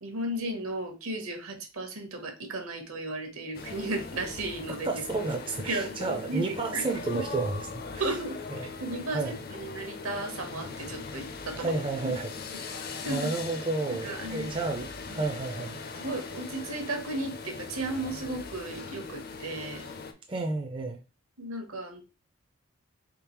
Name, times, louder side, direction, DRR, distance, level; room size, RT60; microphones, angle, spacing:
voice 1, 0.0-5.0 5.6-6.8 8.0-8.4 8.8-12.2 13.0-13.3 13.9-14.5 15.1-15.2 16.0-19.9 21.4-22.0, right 2 dB, 75° right, 0.9 m, -35 dB
sound 1, 3.5-20.1, left 4 dB, 45° left, 0.5 m, -40 dB
voice 2, 4.8-8.2 8.5-8.6 9.1-9.4 11.5-15.8 20.3-21.0, right 3 dB, 20° right, 0.4 m, -32 dB
3.6 x 3.4 x 3.0 m
head